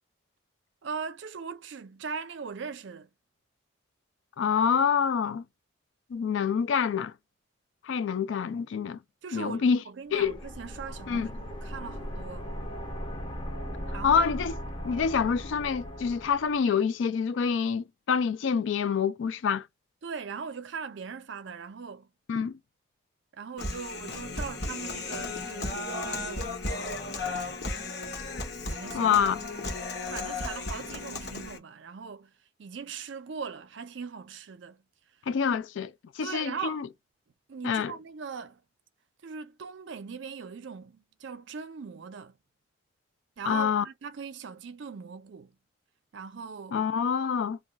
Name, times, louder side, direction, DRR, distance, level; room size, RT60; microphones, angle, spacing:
voice 1, 0.8-3.1 9.2-12.5 13.9-14.3 20.0-22.1 23.3-26.6 28.7-29.3 29.8-32.3 32.6-34.8 36.2-36.8 37.5-38.6 39.2-42.4 43.4-45.5 46.1-46.8, right 5 dB, 65° right, 0.5 m, -40 dB
voice 2, 4.4-5.4 6.1-7.1 7.8-9.0 9.3-9.8 10.1-10.4 11.1-11.3 14.0-14.5 14.8-19.6 22.3-22.5 28.9-29.4 35.3-36.9 37.6-37.9 43.5-43.8 46.7-47.6, left 6 dB, 70° left, 0.3 m, -26 dB
sound 1, 10.1-16.6, equal, 25° left, 0.6 m, -38 dB
Human voice, 23.6-31.6, left 2 dB, 55° left, 0.9 m, -35 dB
2.3 x 2.3 x 3.8 m
head